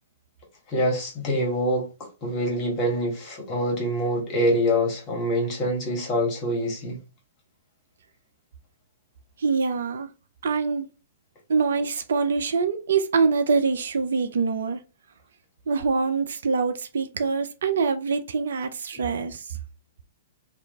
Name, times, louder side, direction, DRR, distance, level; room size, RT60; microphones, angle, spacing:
voice 1, 0.7-7.0 18.9-19.0, equal, 25° left, 1.2 m, -25 dB
voice 2, 9.4-10.1 10.4-10.9 11.5-14.8 15.7-19.6, right 5 dB, 60° right, 0.3 m, -24 dB
2.4 x 2.2 x 2.8 m
figure-of-eight pair, 110°, 0 cm